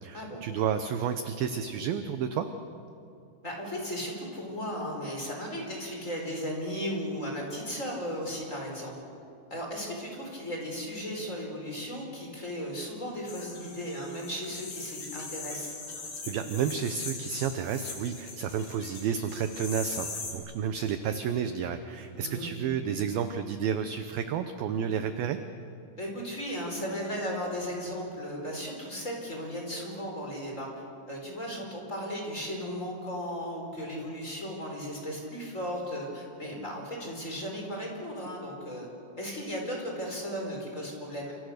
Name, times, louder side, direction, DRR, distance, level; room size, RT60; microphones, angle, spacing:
voice 1, 0.0-2.5 16.3-25.4, right 7 dB, 75° right, 9 dB, 2.3 m, -31 dB
voice 2, 3.4-8.9 9.5-15.7 22.1-22.5 26.0-30.7 31.1-38.9 39.2-41.3, equal, 15° left, 0 dB, 4.8 m, -36 dB
sound 1, 13.3-20.3, left 4 dB, 70° left, 6.1 m, -41 dB
29.0 x 27.5 x 6.6 m, 2.6 s
omnidirectional pair, 5.1 m